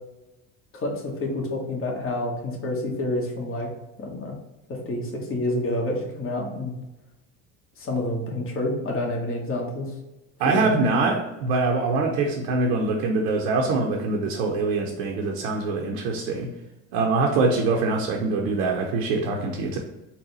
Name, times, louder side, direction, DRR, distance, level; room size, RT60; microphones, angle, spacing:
voice 1, 0.7-3.7 4.0-4.3 4.7-6.7 7.8-9.9 10.4-10.8, left 1 dB, 35° left, -1 dB, 1.2 m, -28 dB
voice 2, 10.4-16.5 16.9-19.8, right 3 dB, 85° right, 0 dB, 0.7 m, -24 dB
4.1 x 2.2 x 3.9 m, 0.99 s
supercardioid pair, 85°, 36 cm